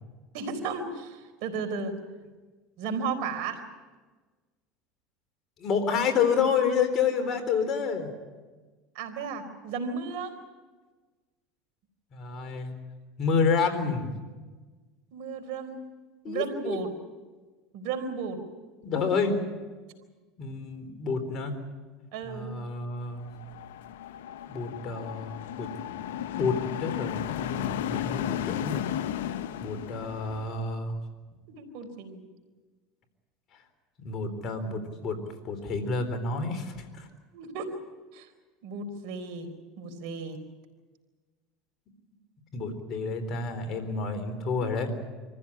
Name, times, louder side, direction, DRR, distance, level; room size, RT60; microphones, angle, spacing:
voice 1, 0.3-2.0 2.8-3.6 8.9-10.3 15.1-15.8 16.3-16.9 17.7-18.4 22.1-22.6 31.5-32.2 37.3-37.8 38.1-38.3 38.6-39.5 39.8-40.4, right 5 dB, 70° right, 6 dB, 4.1 m, -34 dB
voice 2, 5.6-8.1 12.1-12.8 13.2-14.1 16.2-16.8 18.8-19.4 20.4-21.6 22.2-23.3 24.5-28.9 29.3-31.0 34.0-37.1 42.5-44.9, left 5 dB, 45° left, 7 dB, 3.9 m, -29 dB
sound 1, 23.2-30.6, left 11 dB, 85° left, 0.8 m, -34 dB
24.0 x 15.0 x 9.9 m, 1.3 s
supercardioid pair, 105°, 0 cm